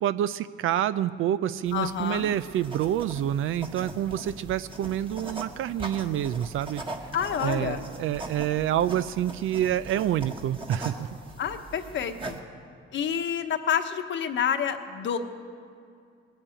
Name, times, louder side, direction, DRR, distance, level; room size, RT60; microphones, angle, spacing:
voice 1, 0.0-6.8 7.4-11.1, right 11 dB, 75° right, 14 dB, 0.4 m, -27 dB
voice 2, 1.7-2.3 7.1-7.8 11.4-12.4 12.9-15.2, left 8 dB, 65° left, 7 dB, 1.1 m, -28 dB
sound 1, 1.7-12.4, right 2 dB, 25° right, 1.6 m, -41 dB
21.0 x 7.4 x 8.8 m, 2.3 s
cardioid pair, 105°, 21 cm